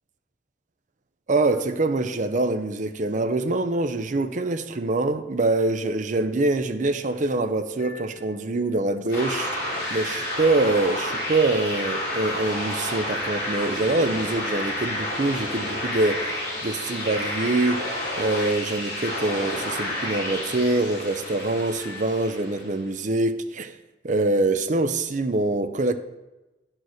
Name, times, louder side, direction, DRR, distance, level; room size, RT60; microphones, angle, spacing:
voice 1, 1.3-9.6 9.9-16.3 16.6-17.9 18.2-23.8 24.0-25.9, right 2 dB, 45° right, 0.5 m, -24 dB
sound 1, 6.7-22.1, left 3 dB, 30° left, 3.6 m, -45 dB
sound 2, 9.1-22.8, left 1 dB, 55° left, 2.8 m, -30 dB
9.4 x 4.5 x 6.3 m
head